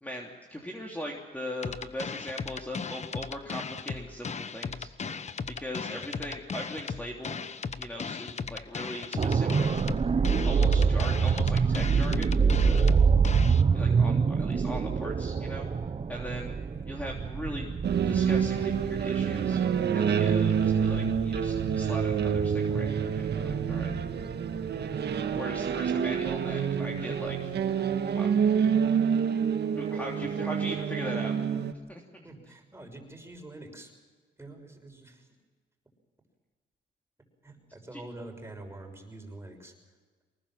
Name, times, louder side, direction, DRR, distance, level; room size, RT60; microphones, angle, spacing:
voice 1, 0.0-4.9 5.5-7.5 7.8-9.8 10.5-13.0 13.7-15.7 16.1-16.6 16.8-17.7 18.1-19.6 19.9-23.9 25.2-27.5 28.1-28.3 29.8-31.3 31.9-32.3 37.9-38.0, equal, 10° left, -1 dB, 3.2 m, -39 dB
sound 1, 1.6-13.6, left 5 dB, 35° left, 1.1 m, -36 dB
voice 2, 5.9-6.2 10.7-11.0 16.7-16.8 24.9-25.2 29.9-30.6 32.2-33.9 34.4-35.3 37.4-39.7, right 2 dB, 10° right, 3 dB, 6.2 m, -46 dB
sound 2, 9.2-27.0 27.4-27.6, right 5 dB, 30° right, 1.0 m, -27 dB
sound 3, 17.8-31.7, right 7 dB, 55° right, 1.7 m, -27 dB
24.0 x 20.0 x 7.6 m, 1.5 s
cardioid pair, 90°, 20 cm